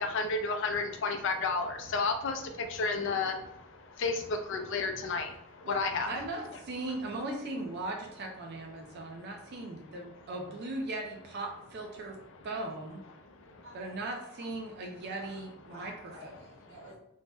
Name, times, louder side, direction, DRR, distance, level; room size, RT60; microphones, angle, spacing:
voice 1, 0.0-6.1 8.8-9.3 13.2-13.7, left 4 dB, 65° left, 5 dB, 0.4 m, -32 dB
voice 2, 6.0-12.2 12.4-13.0 13.7-16.1, right 2 dB, 55° right, 2 dB, 0.4 m, -38 dB
voice 3, 15.1-17.0, right 1 dB, 75° right, -3 dB, 1.1 m, -51 dB
2.6 x 2.1 x 3.4 m, 0.80 s
head